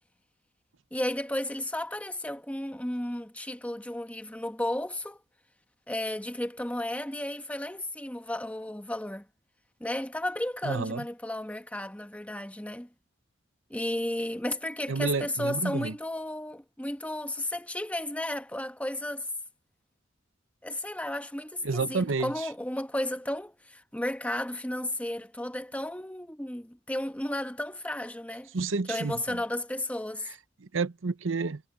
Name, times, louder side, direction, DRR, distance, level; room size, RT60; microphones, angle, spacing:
voice 1, 0.9-5.2 5.9-9.2 9.8-12.9 13.7-19.3 20.6-28.5 28.9-30.3, left 1 dB, 5° left, 1.2 m, -33 dB
voice 2, 10.6-11.0 14.9-15.9 21.6-22.5 28.5-29.4 30.7-31.6, right 4 dB, 70° right, 0.8 m, -30 dB
head